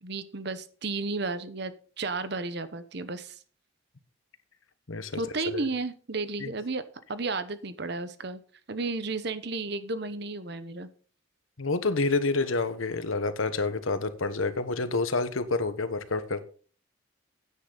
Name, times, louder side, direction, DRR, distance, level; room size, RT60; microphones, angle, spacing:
voice 1, 0.0-3.4 5.2-8.4 8.7-10.9, right 3 dB, 55° right, 0.9 m, -33 dB
voice 2, 4.9-5.2 5.5-5.6 6.4-6.5 11.6-16.4, left 3 dB, 85° left, 1.1 m, -28 dB
9.9 x 9.4 x 3.9 m
head